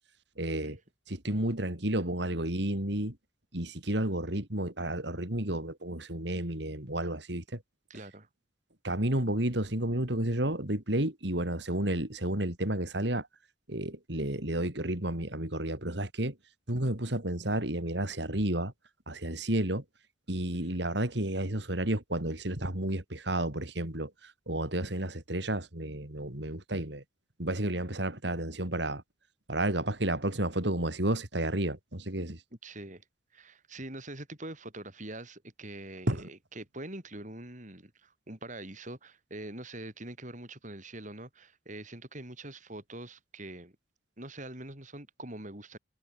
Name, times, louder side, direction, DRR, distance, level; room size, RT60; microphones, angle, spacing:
voice 1, 0.4-0.8 1.1-3.2 3.5-7.6 8.8-13.3 13.7-16.4 16.7-18.7 19.1-19.8 20.3-27.0 27.4-29.0 29.5-32.4 36.1-36.3, right 1 dB, 60° right, 3.6 m, -31 dB
voice 2, 7.9-8.3 20.5-20.8 26.7-26.8 32.6-33.0 33.3-43.8 44.2-45.8, right 1 dB, 40° right, 5.2 m, -44 dB
head